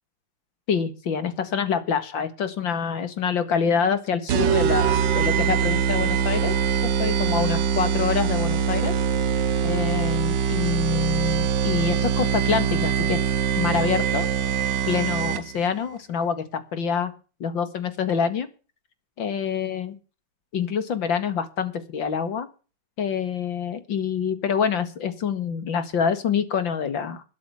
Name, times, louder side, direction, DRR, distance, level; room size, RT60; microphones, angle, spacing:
voice 1, 0.7-6.5 7.0-9.0 9.6-13.2 13.6-14.3 14.9-17.1 17.4-18.5 19.2-20.0 20.5-22.5 23.0-27.2, left 6 dB, 80° left, 11 dB, 2.6 m, -26 dB
sound 1, 4.3-15.7, right 8 dB, 70° right, 1.5 m, -23 dB
13.0 x 9.2 x 7.0 m, 0.35 s
omnidirectional pair, 2.0 m